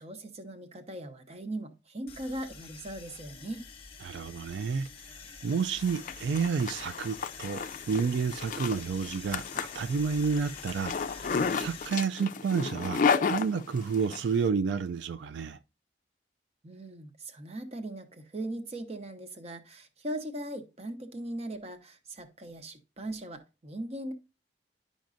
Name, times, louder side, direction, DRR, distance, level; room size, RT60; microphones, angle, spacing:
voice 1, 0.0-3.7 16.6-24.1, right 1 dB, 35° right, 0.8 m, -39 dB
sound 1, 2.1-11.9, left 5 dB, 30° left, 0.9 m, -47 dB
voice 2, 4.0-4.9 5.4-15.6, right 5 dB, 90° right, 0.3 m, -30 dB
Zipper (clothing), 5.5-14.2, left 5 dB, 50° left, 0.4 m, -32 dB
10.5 x 5.2 x 2.5 m
head